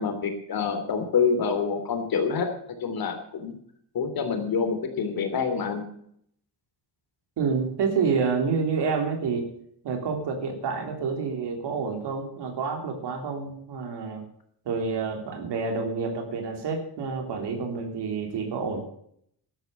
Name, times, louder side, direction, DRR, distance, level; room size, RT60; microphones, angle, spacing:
voice 1, 0.0-2.5 2.8-3.5 3.9-5.8, left 5 dB, 55° left, 7 dB, 3.2 m, -26 dB
voice 2, 7.4-9.5 9.8-14.2 14.7-18.8, right 5 dB, 70° right, 3 dB, 3.5 m, -28 dB
12.5 x 10.5 x 6.9 m, 0.68 s
cardioid pair, 140°, 42 cm